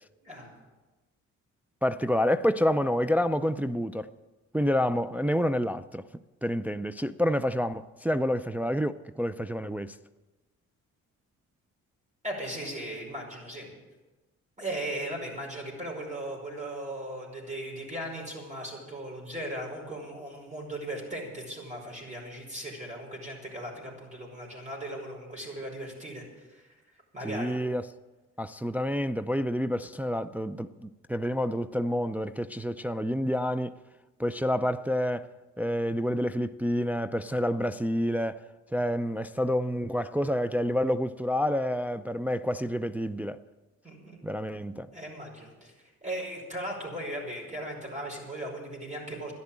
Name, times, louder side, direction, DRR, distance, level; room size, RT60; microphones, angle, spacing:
voice 1, 1.8-4.1 4.5-6.1 6.4-10.0 27.2-27.9 28.4-33.8 34.2-35.3 35.6-38.4 38.7-43.4 44.2-44.9, equal, 5° right, 0.4 m, -28 dB
voice 2, 12.2-13.7 14.6-26.8 27.1-27.6 43.8-44.2 44.9-45.7 46.0-49.3, right 1 dB, 25° right, 5.2 m, -37 dB
12.0 x 10.5 x 8.7 m
cardioid pair, 90°, 30 cm